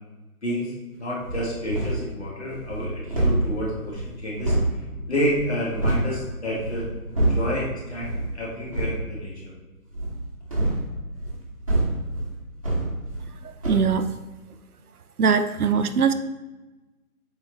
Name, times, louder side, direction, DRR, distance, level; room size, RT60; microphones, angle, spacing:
voice 1, 0.4-4.5 5.1-6.9 7.3-9.3, equal, 45° left, -5 dB, 1.7 m, -29 dB
sound 1, 1.2-2.1 2.5-6.1 6.5-7.6 8.0-8.3 8.6-9.0 9.9-13.4 13.6-13.9, right 2 dB, 25° right, 1.1 m, -26 dB
voice 2, 13.7-14.1 15.2-16.1, right 6 dB, 75° right, 10 dB, 0.6 m, -21 dB
8.0 x 4.0 x 3.0 m, 1.2 s
figure-of-eight pair, 170°, 45 cm